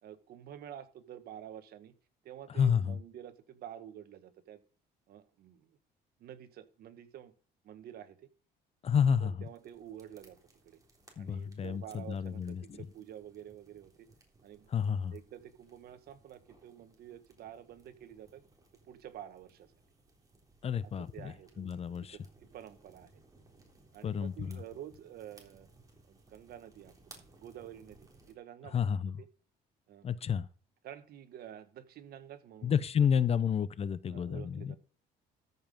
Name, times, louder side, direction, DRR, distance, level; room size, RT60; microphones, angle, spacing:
voice 1, 0.0-1.9 2.2-4.6 5.1-5.8 6.2-7.3 7.6-8.2 9.2-10.4 10.6-10.8 11.2-14.1 14.4-14.7 15.1-18.4 18.8-19.7 20.8-22.2 22.5-23.1 23.9-25.7 26.1-28.8 29.2-29.3 29.9-30.1 30.8-33.4 34.1-34.8, right 10 dB, 65° right, 1.3 m, -49 dB
voice 2, 2.5-3.0 8.8-9.3 11.2-12.8 14.7-15.1 20.6-22.2 24.0-24.6 28.7-29.2 30.0-30.5 32.6-34.7, left 7 dB, 35° left, 0.7 m, -30 dB
sound 1, 9.4-28.3, right 3 dB, 20° right, 3.6 m, -62 dB
13.5 x 5.6 x 5.3 m
cardioid pair, 110°, 17 cm